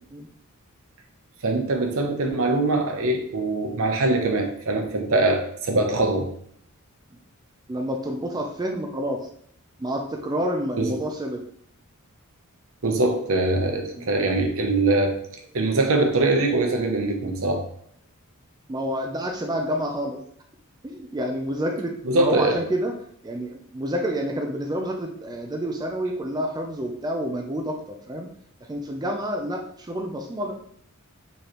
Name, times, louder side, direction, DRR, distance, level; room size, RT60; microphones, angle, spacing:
voice 1, 1.4-6.3 10.8-11.0 12.8-15.2 15.5-17.6 22.0-22.6, right 2 dB, 65° right, 3 dB, 0.8 m, -22 dB
voice 2, 7.7-9.3 9.8-11.4 14.0-14.1 18.7-20.2 20.8-22.9 23.2-28.3 28.7-30.5, equal, 20° right, 1 dB, 0.4 m, -28 dB
4.9 x 3.2 x 3.0 m, 0.65 s
head